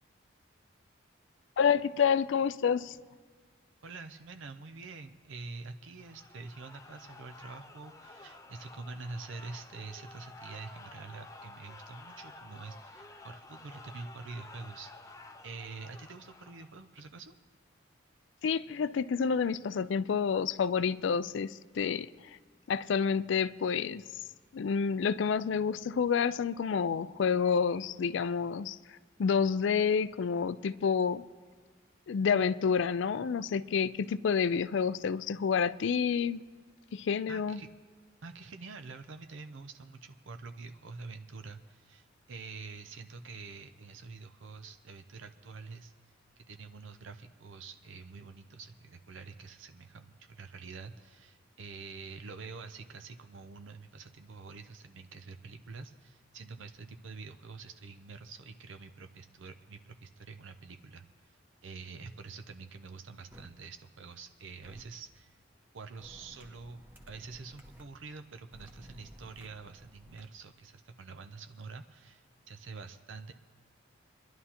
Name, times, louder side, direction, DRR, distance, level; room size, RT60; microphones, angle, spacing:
voice 1, 1.6-3.0 18.4-22.1 22.7-24.0 24.5-28.8 29.2-31.2 32.1-36.4 36.9-37.6, left 6 dB, 65° left, 0.4 m, -29 dB
voice 2, 3.8-15.1 15.4-17.4 37.3-37.7 38.2-45.9 46.5-65.4 65.7-66.8 67.1-73.3, right 4 dB, 70° right, 0.6 m, -46 dB
sound 1, 6.0-16.9, left 2 dB, 15° left, 0.5 m, -52 dB
sound 2, 63.3-63.4 64.6-64.8 66.0-67.8 68.5-70.3, equal, 10° right, 1.0 m, -54 dB
27.5 x 11.0 x 2.9 m
head